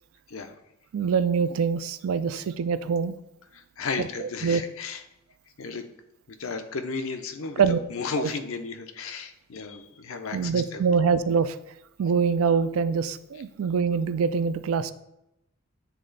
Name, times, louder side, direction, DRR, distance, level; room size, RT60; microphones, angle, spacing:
voice 1, 0.9-3.2 4.0-4.6 7.6-7.8 8.2-8.3 10.3-11.6 12.0-14.9, right 6 dB, 80° right, 12 dB, 0.4 m, -24 dB
voice 2, 3.5-5.0 5.6-5.9 6.4-10.9, left 4 dB, 75° left, 7 dB, 0.6 m, -34 dB
8.2 x 3.3 x 3.9 m, 0.84 s
head